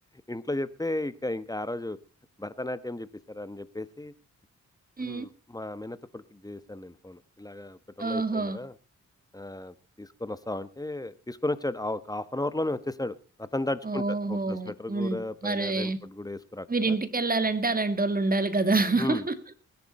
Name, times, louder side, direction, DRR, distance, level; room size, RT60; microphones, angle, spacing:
voice 1, 0.3-2.0 2.4-4.1 5.0-8.7 9.3-17.0 19.0-19.3, left 1 dB, 10° left, 14 dB, 1.2 m, -34 dB
voice 2, 5.0-5.3 8.0-8.6 13.8-16.0 16.7-19.4, right 3 dB, 30° right, 11 dB, 1.9 m, -27 dB
20.0 x 11.0 x 4.3 m, 0.34 s
cardioid pair, 70°, 30 cm